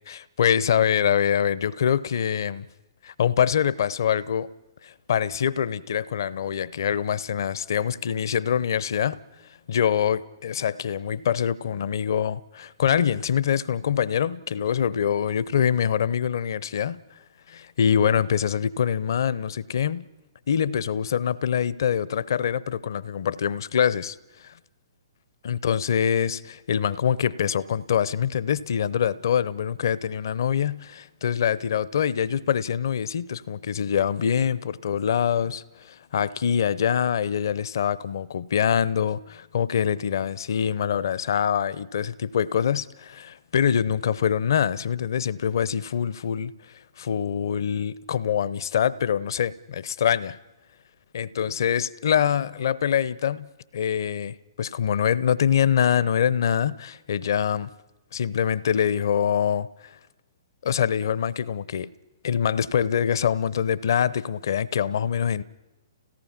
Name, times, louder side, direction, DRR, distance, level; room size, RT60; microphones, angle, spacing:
voice 1, 0.1-2.6 3.0-4.5 4.8-9.2 9.7-17.0 17.5-20.1 20.5-24.2 24.4-24.5 25.4-50.4 51.1-57.7 58.1-59.7 60.6-61.9 62.2-65.4, left 8 dB, 60° left, 0.7 m, -24 dB
29.5 x 17.5 x 5.9 m
figure-of-eight pair, 120°, 2 cm